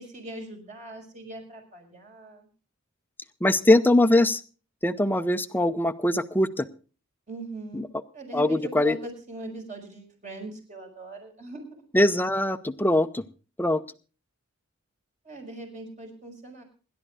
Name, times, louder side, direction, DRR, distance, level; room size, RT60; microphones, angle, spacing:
voice 1, 0.0-2.5 7.3-7.9 8.1-11.7 15.2-16.6, right 2 dB, 35° right, 2 dB, 5.8 m, -40 dB
voice 2, 3.4-4.4 4.8-6.7 7.7-7.9 8.3-9.0 11.9-13.2 13.6-13.8, left 1 dB, 10° left, 10 dB, 0.7 m, -22 dB
27.5 x 12.0 x 2.5 m, 0.36 s
head